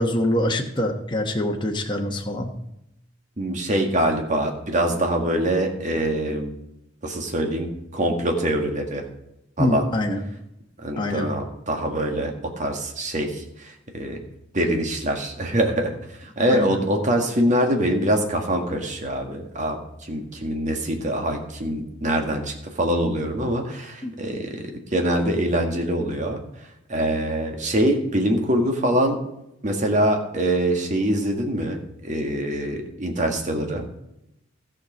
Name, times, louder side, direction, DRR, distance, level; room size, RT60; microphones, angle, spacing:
voice 1, 0.0-2.5 9.6-10.2 11.0-11.3 16.5-16.8 24.0-24.1, left 1 dB, 25° left, 1 dB, 1.1 m, -24 dB
voice 2, 3.4-6.6 7.0-7.7 7.9-9.0 9.6-9.9 10.8-14.2 14.5-26.4 26.9-29.2 29.6-33.9, right 1 dB, 40° right, 4 dB, 1.7 m, -24 dB
14.0 x 6.6 x 5.1 m, 0.83 s
head